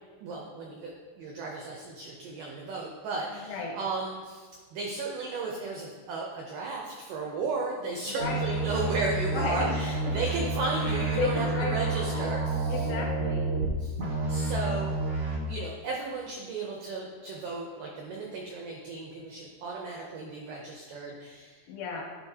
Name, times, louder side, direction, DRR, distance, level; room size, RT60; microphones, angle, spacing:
voice 1, 0.2-12.9 13.8-13.9 14.3-15.0 15.5-21.7, right 3 dB, 85° right, -1 dB, 1.8 m, -34 dB
voice 2, 3.3-3.8 8.1-8.5 9.3-9.7 11.2-12.3 12.7-13.6 21.7-22.0, left 5 dB, 80° left, 0 dB, 2.2 m, -33 dB
sound 1, 8.2-13.7 14.0-15.4, right 3 dB, 70° right, 1.1 m, -30 dB
10.5 x 3.9 x 2.7 m, 1.5 s
omnidirectional pair, 4.6 m